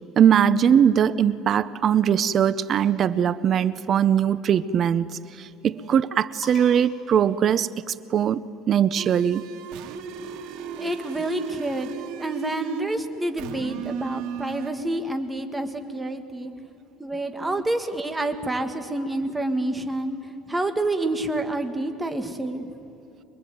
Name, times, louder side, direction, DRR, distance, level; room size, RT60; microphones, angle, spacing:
voice 1, 0.2-8.4 8.7-9.4, right 8 dB, 35° right, 16 dB, 0.6 m, -21 dB
sound 1, 6.4-8.2 9.3-11.0, left 2 dB, 25° left, 4.0 m, -48 dB
sound 2, 9.0-12.9 13.4-14.7, right 8 dB, 75° right, 2.2 m, -36 dB
voice 2, 10.8-16.5 17.0-20.2 20.5-22.7, right 1 dB, 10° right, 6 dB, 1.7 m, -28 dB
24.5 x 22.0 x 9.4 m, 2.8 s
cardioid pair, 150°, 0 cm